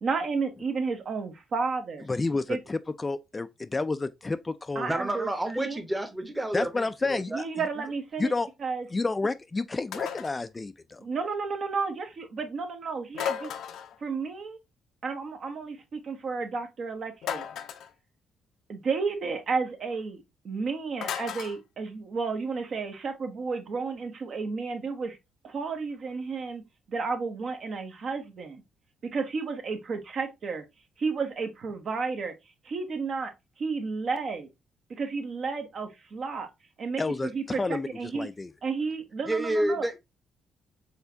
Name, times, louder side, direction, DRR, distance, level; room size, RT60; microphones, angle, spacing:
voice 1, 0.0-2.1 2.5-2.6 4.7-5.3 5.6-5.8 7.3-8.3 8.6-8.9 11.0-13.5 14.0-14.6 15.0-17.5 18.7-25.2 25.4-28.6 29.0-30.6 31.0-32.3 32.6-33.3 33.6-34.5 34.9-36.5 36.8-38.3 38.6-39.9, right 4 dB, 55° right, 1.0 m, -32 dB
voice 2, 2.1-4.9 6.5-7.3 7.6-7.7 8.2-8.5 8.9-11.0 37.0-37.9 38.1-38.5, left 3 dB, 25° left, 0.3 m, -30 dB
voice 3, 4.9-7.4 39.3-40.0, right 1 dB, 10° right, 0.9 m, -29 dB
sound 1, 9.9-10.4 13.1-14.0 17.2-17.9 21.0-21.6, left 9 dB, 80° left, 0.6 m, -34 dB
4.4 x 3.4 x 2.6 m
cardioid pair, 90°, 0 cm